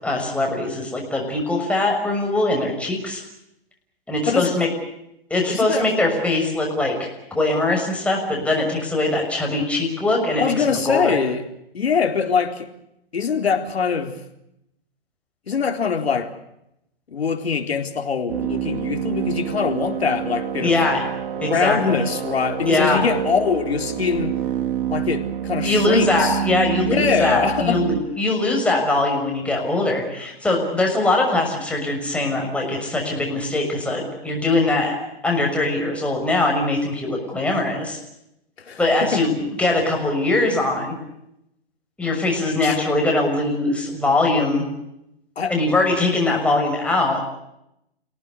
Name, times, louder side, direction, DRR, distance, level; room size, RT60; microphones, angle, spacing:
voice 1, 0.0-3.2 4.1-4.7 5.3-7.1 7.3-11.2 20.6-21.0 21.4-22.0 22.6-23.0 25.6-35.0 35.2-38.0 38.8-39.3 39.6-40.9 42.0-44.7 45.5-47.3, left 2 dB, 5° left, 0 dB, 6.2 m, -21 dB
voice 2, 4.3-4.7 5.5-5.9 10.4-11.4 11.7-12.7 13.1-14.2 15.5-16.3 17.1-20.7 21.4-24.3 24.9-26.4 26.8-27.8 38.6-39.2 42.6-42.8 45.4-45.5, left 6 dB, 80° left, 5 dB, 4.1 m, -23 dB
sound 1, 18.3-28.0, right 9 dB, 60° right, 3.2 m, -27 dB
28.0 x 18.5 x 8.3 m, 0.82 s
hypercardioid pair, 145°, 31 cm